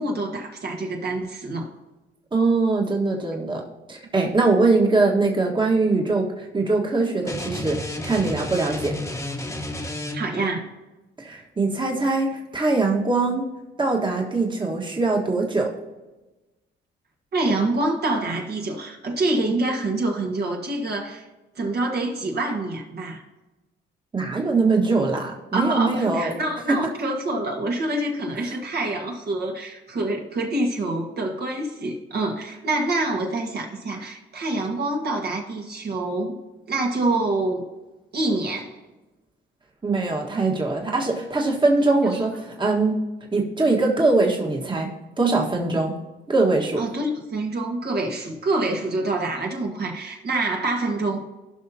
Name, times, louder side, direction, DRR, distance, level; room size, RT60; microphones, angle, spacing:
voice 1, 0.0-1.7 10.1-10.7 17.3-21.3 21.5-23.2 25.5-36.4 36.7-37.6 38.1-38.7 42.0-42.2 46.8-51.2, right 2 dB, 55° right, 1 dB, 1.7 m, -26 dB
voice 2, 2.3-3.6 3.9-7.8 8.0-8.9 11.2-13.4 13.8-15.7 24.1-26.3 26.7-26.8 28.4-28.6 39.8-43.0 43.3-44.9 45.2-45.9 46.3-46.8, right 3 dB, 25° right, 0 dB, 1.6 m, -22 dB
sound 1, 7.2-10.5, left 1 dB, 15° left, 1.2 m, -31 dB
16.0 x 5.6 x 2.8 m, 1.1 s
cardioid pair, 90°, 20 cm